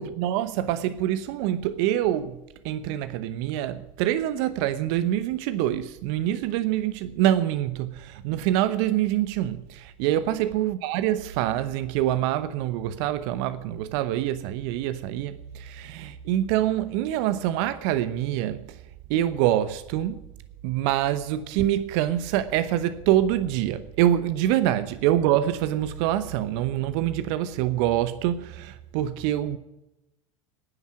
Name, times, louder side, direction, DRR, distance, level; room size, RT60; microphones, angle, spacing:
voice 1, 0.0-2.4 2.6-18.6 19.1-20.1 20.6-29.6, right 12 dB, 55° right, 1.0 m, -25 dB
11.0 x 9.4 x 9.7 m
hypercardioid pair, 85°, 17 cm